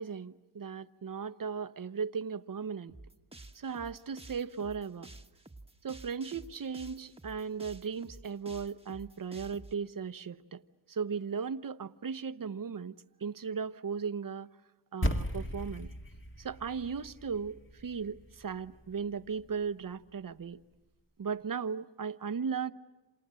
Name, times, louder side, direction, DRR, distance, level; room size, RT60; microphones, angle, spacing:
voice 1, 0.0-3.0 3.5-5.1 5.8-10.6 10.9-14.5 14.9-15.9 16.4-20.6 21.2-22.7, right 6 dB, 40° right, 1.0 m, -37 dB
sound 1, 2.9-9.7, right 2 dB, 10° right, 1.4 m, -51 dB
sound 2, 15.0-19.5, equal, 25° left, 2.1 m, -37 dB
28.0 x 27.5 x 7.6 m
cardioid pair, 65°, 49 cm